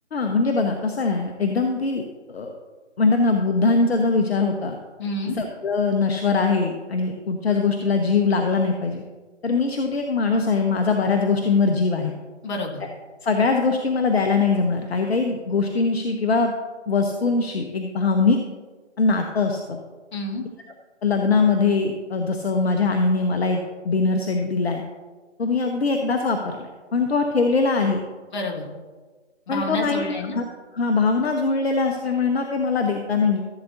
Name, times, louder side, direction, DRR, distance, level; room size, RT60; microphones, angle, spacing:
voice 1, 0.1-2.0 2.3-2.5 3.0-4.8 5.4-9.0 9.4-12.1 13.2-16.5 16.9-18.4 19.0-19.8 21.0-23.6 23.8-24.8 25.4-28.0 29.5-30.4 30.7-33.4, left 4 dB, 60° left, 4 dB, 0.9 m, -22 dB
voice 2, 5.0-5.4 12.4-12.8 20.1-20.5 28.3-28.7 29.5-30.4, left 1 dB, 40° left, -1 dB, 1.9 m, -29 dB
14.5 x 8.0 x 2.7 m, 1.4 s
figure-of-eight pair, 155°, 36 cm